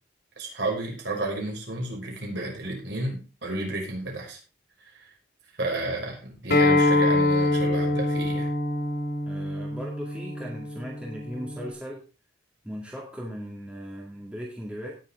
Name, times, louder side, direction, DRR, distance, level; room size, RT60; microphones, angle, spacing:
voice 1, 0.4-4.4 5.6-8.5, right 2 dB, 60° right, -1 dB, 5.8 m, -32 dB
Acoustic guitar, 6.5-11.7, left 2 dB, 50° left, 3.1 m, -25 dB
voice 2, 9.3-12.0 12.6-14.9, equal, 5° right, -3 dB, 2.2 m, -38 dB
18.0 x 7.5 x 3.7 m, 0.33 s
head